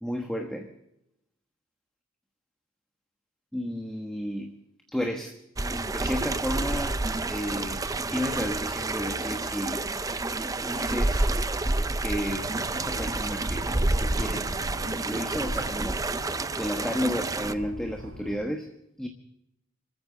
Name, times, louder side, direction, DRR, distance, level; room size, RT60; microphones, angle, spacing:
voice 1, 0.0-0.7 3.5-4.6 4.9-7.0 7.3-9.9 10.4-11.3 12.0-14.5 15.1-16.0 16.5-18.7 19.0-19.1, equal, 5° left, 3 dB, 1.2 m, -33 dB
sound 1, 5.6-17.5, right 2 dB, 15° right, 0.5 m, -29 dB
sound 2, 12.3-18.4, equal, 85° right, 3.9 m, -42 dB
26.0 x 14.0 x 3.9 m, 0.82 s
head